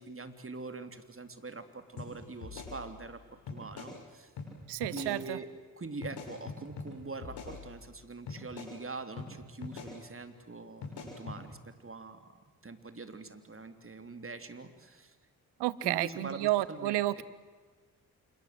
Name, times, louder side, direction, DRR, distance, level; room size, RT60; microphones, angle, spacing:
voice 1, 0.0-4.3 4.9-5.5 5.8-15.2 15.8-17.2, right 3 dB, 30° right, 9 dB, 3.5 m, -44 dB
sound 1, 2.0-2.1 2.4-3.2 3.5-3.9 4.4-4.5 4.8-5.1 6.0-6.9 7.2-7.9 8.3-8.7 9.2-9.3 9.6-9.9 10.8-11.4, left 5 dB, 75° left, 6.8 m, -42 dB
voice 2, 4.7-5.4 15.6-17.2, right 16 dB, 80° right, 19 dB, 1.1 m, -31 dB
27.5 x 24.5 x 7.9 m, 1.5 s
hypercardioid pair, 40°, 40 cm